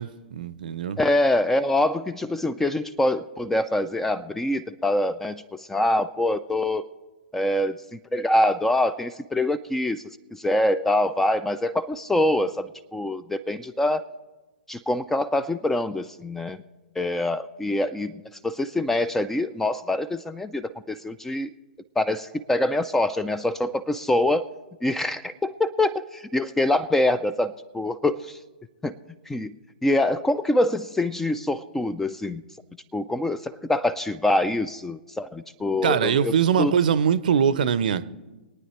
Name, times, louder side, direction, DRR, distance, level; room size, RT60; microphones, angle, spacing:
voice 1, 0.0-1.0 35.8-38.0, right 8 dB, 55° right, 15 dB, 0.6 m, -22 dB
voice 2, 1.0-6.8 7.3-10.0 10.3-14.0 14.7-16.6 17.0-21.5 22.0-24.5 24.8-28.4 28.8-29.0 29.3-29.5 29.8-32.4 32.9-36.7, left 1 dB, 5° left, 16 dB, 0.4 m, -25 dB
24.5 x 9.4 x 3.1 m, 1.2 s
figure-of-eight pair, 110°, 6 cm